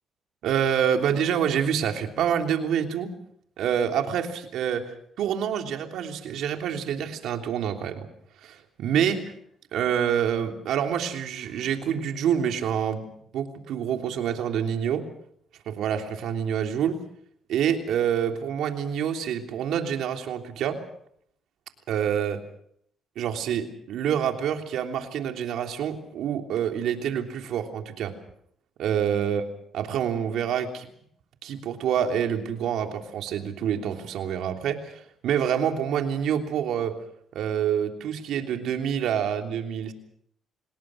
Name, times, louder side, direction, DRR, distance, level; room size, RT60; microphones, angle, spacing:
voice 1, 0.4-3.1 3.6-8.1 8.4-9.2 9.7-13.0 13.3-15.1 15.7-16.9 17.5-20.8 21.9-22.4 23.1-28.1 28.8-29.4 29.7-30.9 31.4-36.9 37.3-39.9, right 8 dB, 80° right, 4 dB, 3.1 m, -27 dB
28.0 x 19.0 x 6.3 m, 0.68 s
cardioid pair, 90°, 0 cm